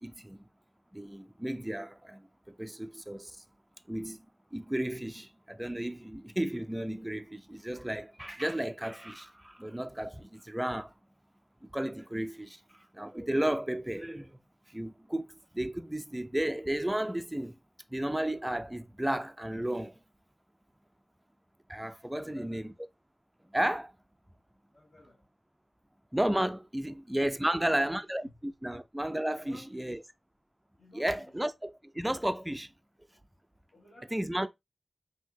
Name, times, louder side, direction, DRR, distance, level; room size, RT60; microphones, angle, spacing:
voice 1, 0.0-0.4 0.9-3.4 3.9-10.9 11.6-14.4 14.7-15.3 15.5-17.6 17.9-20.0 21.7-22.7 23.5-23.9 26.1-30.0 30.9-32.7 34.1-34.5, right 1 dB, 10° right, 0.4 m, -33 dB
voice 2, 22.1-22.6 24.7-25.2 26.8-27.0 27.4-28.4 28.6-28.8 29.4-30.0 30.8-31.3 33.7-34.5, left 1 dB, 50° left, 1.5 m, -55 dB
5.5 x 2.7 x 2.7 m
wide cardioid pair, 95°, 0 cm